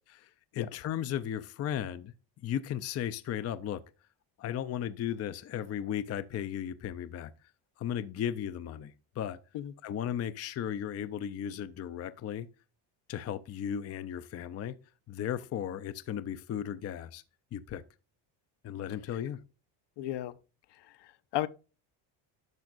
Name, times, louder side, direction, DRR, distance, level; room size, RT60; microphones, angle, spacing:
voice 1, 0.5-2.1 2.4-3.8 4.4-7.3 7.8-9.4 9.8-12.5 13.1-14.8 15.1-17.2 17.5-17.8 18.6-19.4, left 10 dB, 35° left, 0.5 m, -35 dB
voice 2, 20.0-20.3 20.7-21.5, left 13 dB, 60° left, 0.7 m, -35 dB
10.5 x 6.3 x 2.5 m
cardioid pair, 120°, 47 cm